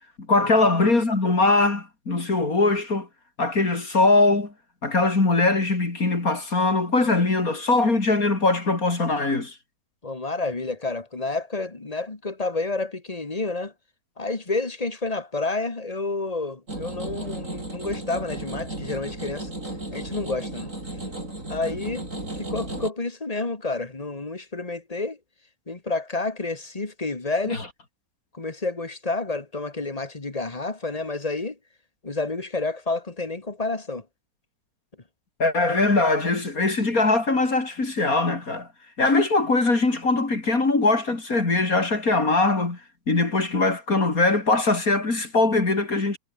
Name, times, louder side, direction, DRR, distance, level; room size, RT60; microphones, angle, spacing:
voice 1, 0.3-3.1 3.4-4.5 4.8-9.5 35.4-38.7 39.0-42.8 43.1-46.2, left 3 dB, 50° left, 4.1 m, -21 dB
voice 2, 10.0-13.7 14.2-19.5 19.9-20.7 21.5-25.2 25.7-27.6 28.3-31.6 32.0-34.0, left 3 dB, 20° left, 1.9 m, -29 dB
sound 1, 16.7-22.9, right 1 dB, 45° right, 8.3 m, -34 dB
omnidirectional pair, 1.9 m